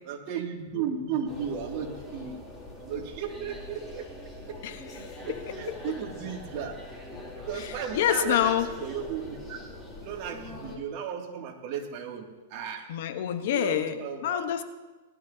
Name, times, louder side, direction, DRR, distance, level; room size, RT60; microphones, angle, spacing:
voice 1, 0.1-2.4 2.8-4.0 4.5-4.6 5.2-6.7 7.3-8.5 8.8-9.6 10.0-12.9 13.5-14.4, right 7 dB, 45° right, 0 dB, 2.6 m, -35 dB
sound 1, 1.3-10.8, left 1 dB, 10° left, 3.5 m, -43 dB
voice 2, 4.6-5.4 7.5-8.7 12.9-13.9 14.2-14.6, left 10 dB, 65° left, 8 dB, 1.2 m, -27 dB
19.0 x 12.5 x 2.9 m, 1.2 s
hypercardioid pair, 130°, 0 cm